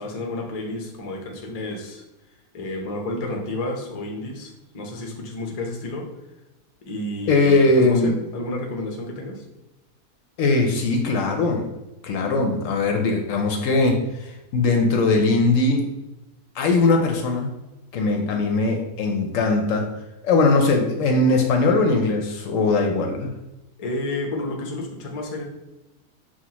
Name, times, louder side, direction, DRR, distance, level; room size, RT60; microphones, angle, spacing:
voice 1, 0.0-2.0 2.5-6.1 6.9-9.4 23.8-25.4, left 2 dB, 45° left, 1 dB, 0.5 m, -31 dB
voice 2, 7.3-8.2 10.4-11.7 12.0-15.9 16.5-17.5 17.9-19.9 20.2-23.3, left 3 dB, 70° left, 3 dB, 0.9 m, -20 dB
5.6 x 2.3 x 2.9 m, 0.99 s
omnidirectional pair, 1.6 m